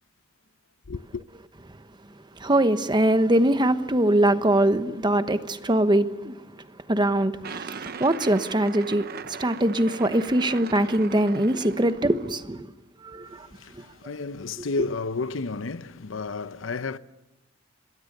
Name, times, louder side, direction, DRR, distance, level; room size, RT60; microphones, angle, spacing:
voice 1, 0.9-1.2 13.3-17.0, left 3 dB, 85° left, 0.7 m, -32 dB
voice 2, 2.4-6.3 6.9-12.7 13.0-13.5, right 1 dB, 25° right, 1.0 m, -22 dB
sound 1, 7.4-12.4, right 6 dB, 50° right, 0.8 m, -39 dB
26.0 x 22.0 x 6.7 m
head